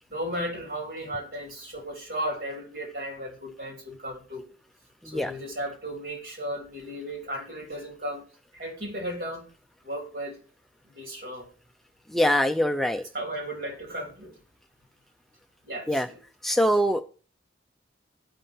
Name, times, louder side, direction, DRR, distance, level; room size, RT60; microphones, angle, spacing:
voice 1, 0.1-4.4 5.0-8.2 8.5-9.5 9.8-10.4 10.9-11.5 13.1-14.4 15.6-16.2, equal, 55° right, 2.9 m, -35 dB
voice 2, 12.1-13.0 15.9-16.1 16.4-17.0, equal, ahead, 0.4 m, -23 dB
16.5 x 5.6 x 2.7 m
head